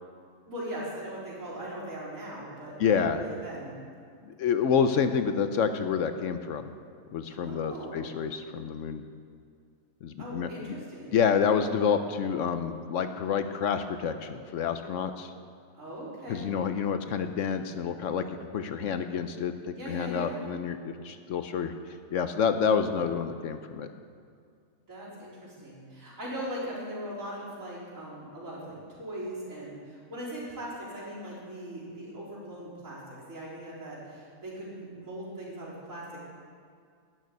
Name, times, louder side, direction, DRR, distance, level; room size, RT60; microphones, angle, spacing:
voice 1, 0.5-3.7 7.3-8.0 10.2-11.1 15.8-16.5 19.7-20.4 24.9-36.2, right 1 dB, 65° right, -9 dB, 4.6 m, -40 dB
voice 2, 2.8-3.2 4.3-6.7 7.1-9.0 10.0-10.7 11.1-15.3 16.3-18.3 18.5-19.5 19.9-21.7 22.1-23.9, left 6 dB, 65° left, 9 dB, 0.9 m, -28 dB
12.5 x 6.6 x 9.3 m, 2.3 s
omnidirectional pair, 1.5 m